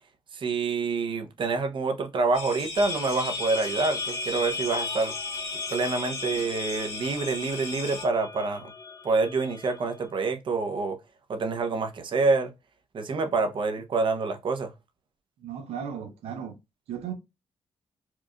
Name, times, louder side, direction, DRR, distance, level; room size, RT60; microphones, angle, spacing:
voice 1, 0.3-5.1 5.7-8.7 9.0-11.0 11.3-12.5 12.9-14.7, right 3 dB, 55° right, 0.8 m, -27 dB
sound 1, 2.3-8.0, left 3 dB, 75° left, 1.4 m, -37 dB
sound 2, 2.8-10.3, left 3 dB, 40° left, 0.6 m, -37 dB
voice 2, 15.4-16.6 16.9-17.1, right 8 dB, 85° right, 0.8 m, -35 dB
4.6 x 2.5 x 2.3 m
cardioid pair, 75°, 10 cm